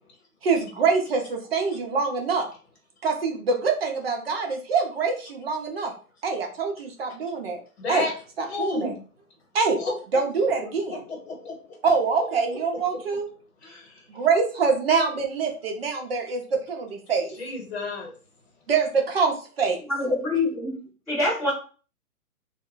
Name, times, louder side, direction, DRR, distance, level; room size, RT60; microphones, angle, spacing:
voice 1, 0.4-2.5 3.0-5.9 6.2-7.6 7.9-8.1 8.4-8.9 9.5-9.8 10.1-11.0 11.8-13.3 14.1-17.4 18.7-19.8, right 5 dB, 40° right, 2 dB, 0.7 m, -25 dB
voice 2, 7.8-8.1 8.5-9.0 9.8-10.2 11.1-11.8 12.1-12.6 13.6-14.1 17.1-18.1, left 3 dB, 45° left, 0 dB, 1.1 m, -32 dB
voice 3, 19.9-21.5, left 2 dB, ahead, -15 dB, 0.8 m, -25 dB
2.1 x 2.0 x 3.7 m, 0.39 s
hypercardioid pair, 160°, 45 cm